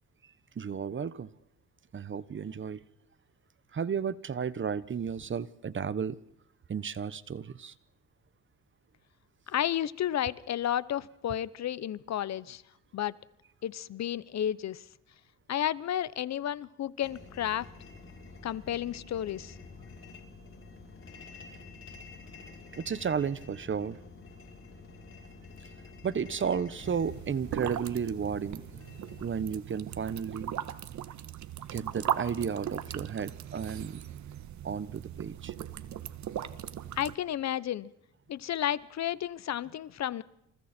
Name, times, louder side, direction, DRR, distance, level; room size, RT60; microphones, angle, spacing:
voice 1, 0.5-1.3 1.9-2.8 3.7-6.2 6.7-7.7 22.7-24.0 26.0-28.6 29.2-30.5 31.7-34.0 34.6-35.5, right 7 dB, 40° right, 17 dB, 1.3 m, -33 dB
voice 2, 9.5-12.6 12.9-13.1 13.6-14.8 15.5-17.7 18.4-19.5 36.9-37.9 38.3-40.2, left 11 dB, 60° left, 19 dB, 1.1 m, -32 dB
sound 1, 17.0-29.3, left 3 dB, 45° left, 7.4 m, -49 dB
sound 2, 26.8-37.2, right 10 dB, 70° right, 1.7 m, -38 dB
29.0 x 27.5 x 4.5 m, 0.80 s
cardioid pair, 90°, 30 cm